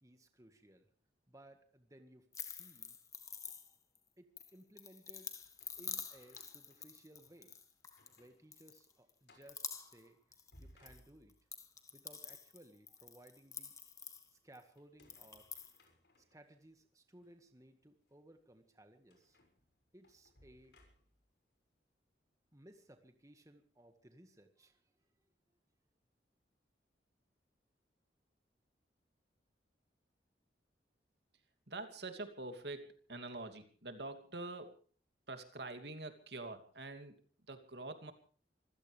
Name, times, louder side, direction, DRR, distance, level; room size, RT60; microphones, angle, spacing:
voice 1, 0.0-0.9 1.3-3.0 4.2-5.3 5.8-7.6 8.2-10.2 10.6-11.3 11.9-13.7 14.3-15.5 16.3-19.4 19.9-20.8 22.5-24.8, right 1 dB, 20° right, 7 dB, 1.8 m, -61 dB
sound 1, 2.3-4.0 4.4-8.2 8.5-9.1 9.4-10.1 10.3-11.0 11.3-14.6 15.0-15.8, left 6 dB, 20° left, 1.6 m, -48 dB
sound 2, 5.4-7.4 7.8-8.4 8.7-8.8 9.2-9.6 10.3-11.6 14.8-16.5 17.2-17.3 19.1-21.3, left 1 dB, 65° left, 6.2 m, -66 dB
voice 2, 31.7-34.8 35.3-37.2 37.5-38.1, right 2 dB, 70° right, 7 dB, 2.8 m, -46 dB
26.0 x 16.0 x 3.4 m, 0.41 s
head